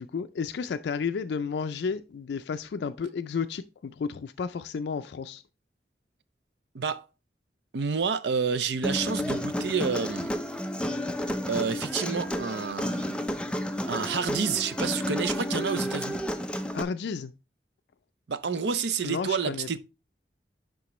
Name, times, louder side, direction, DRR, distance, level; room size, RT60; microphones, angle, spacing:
voice 1, 0.0-5.4 16.7-17.3 19.0-19.8, left 5 dB, 80° left, 0.4 m, -32 dB
voice 2, 6.7-7.1 7.7-10.4 11.5-13.2 13.9-16.2 18.3-19.8, right 5 dB, 80° right, 0.5 m, -29 dB
Human voice, 8.8-16.8, equal, 5° left, 0.4 m, -31 dB
11.0 x 3.7 x 3.1 m
head